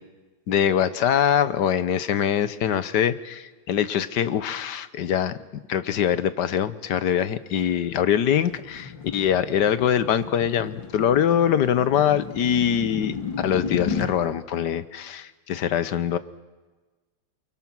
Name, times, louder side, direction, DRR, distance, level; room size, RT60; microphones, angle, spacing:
voice 1, 0.5-5.3 5.7-16.2, left 9 dB, 65° left, 13 dB, 1.5 m, -23 dB
sound 1, 7.7-14.1, left 6 dB, 85° left, 2.9 m, -34 dB
28.5 x 23.5 x 6.2 m, 1.3 s
omnidirectional pair, 2.0 m